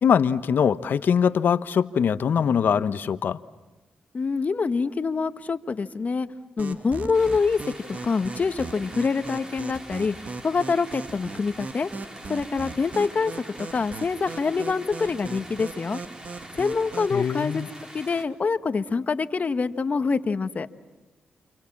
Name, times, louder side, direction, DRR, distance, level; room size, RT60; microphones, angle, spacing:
voice 1, 0.0-3.4 17.1-17.7, left 7 dB, 65° left, 12 dB, 1.1 m, -22 dB
voice 2, 4.1-6.3 6.6-7.6 8.0-10.1 10.4-11.9 12.3-13.3 13.7-16.0 16.5-17.6 17.9-20.7, left 4 dB, 45° left, 10 dB, 1.4 m, -25 dB
sound 1, 6.6-17.2, right 3 dB, 50° right, 2.2 m, -38 dB
sound 2, 7.1-18.3, right 1 dB, 20° right, 4.1 m, -44 dB
30.0 x 27.0 x 7.4 m, 1.1 s
supercardioid pair, 55°, 4 cm